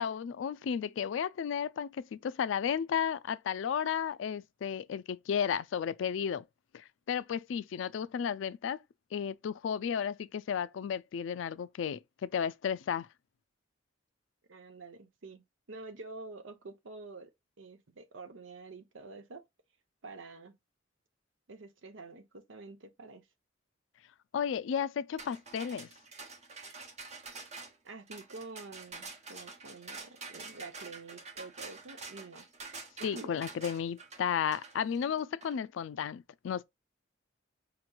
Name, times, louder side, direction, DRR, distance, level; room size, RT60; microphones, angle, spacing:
voice 1, 0.0-6.4 6.7-8.8 9.1-13.1 24.3-25.9 33.0-36.6, left 7 dB, 75° left, 0.3 m, -33 dB
voice 2, 14.5-15.4 15.7-17.3 17.6-19.4 20.0-20.5 21.5-23.3 27.8-32.5 33.0-33.3, right 3 dB, 85° right, 0.8 m, -47 dB
sound 1, 25.2-35.6, right 3 dB, 35° right, 0.9 m, -47 dB
5.0 x 3.0 x 2.2 m
head